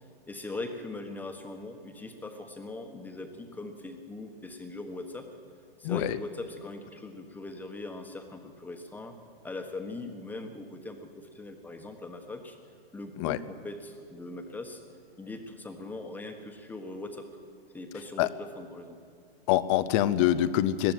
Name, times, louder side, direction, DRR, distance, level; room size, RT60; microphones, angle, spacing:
voice 1, 0.3-5.3 5.8-9.1 9.4-12.6 12.9-14.8 15.2-17.3 17.7-18.3 18.6-19.0, left 2 dB, 5° left, 5 dB, 1.4 m, -40 dB
voice 2, 5.8-6.2 13.2-13.4 18.2-18.3 19.5-20.9, left 12 dB, 30° left, 15 dB, 0.7 m, -25 dB
20.0 x 14.5 x 9.1 m, 2.2 s
hypercardioid pair, 130°, 30 cm